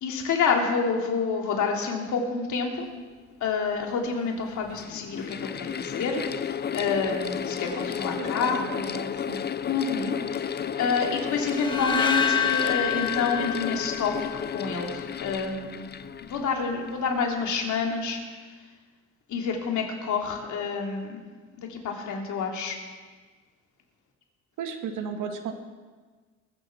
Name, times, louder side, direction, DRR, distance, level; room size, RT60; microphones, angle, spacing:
voice 1, 0.0-2.9 3.4-8.6 9.7-14.2 14.5-15.9 16.2-18.2 19.3-21.2 21.6-22.8, left 5 dB, 75° left, 1 dB, 2.9 m, -28 dB
Mechanical fan, 3.5-3.6 4.4-17.1, left 8 dB, 35° left, 0.6 m, -33 dB
voice 2, 8.2-9.5 24.6-25.5, right 6 dB, 80° right, 4 dB, 1.9 m, -35 dB
sound 1, 11.5-14.7, left 7 dB, 15° left, 1.7 m, -27 dB
21.5 x 7.8 x 7.2 m, 1.4 s
cardioid pair, 90°, 30 cm